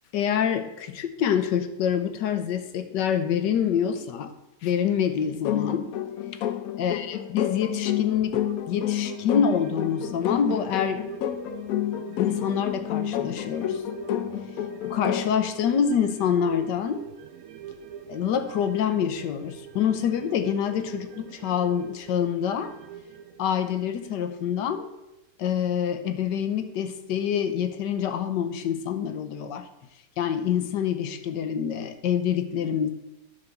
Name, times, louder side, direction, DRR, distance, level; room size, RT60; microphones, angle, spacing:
voice 1, 0.1-4.3 4.6-5.9 6.8-11.1 12.2-13.8 14.8-17.0 18.1-22.7 23.4-24.9 25.4-29.7 30.2-32.9, left 8 dB, 85° left, 9 dB, 1.4 m, -26 dB
sound 1, 5.4-15.4, left 12 dB, 70° left, 0.9 m, -29 dB
sound 2, 8.4-25.2 25.5-25.6, right 8 dB, 65° right, 0.9 m, -43 dB
10.5 x 4.1 x 6.8 m, 0.94 s
omnidirectional pair, 1.8 m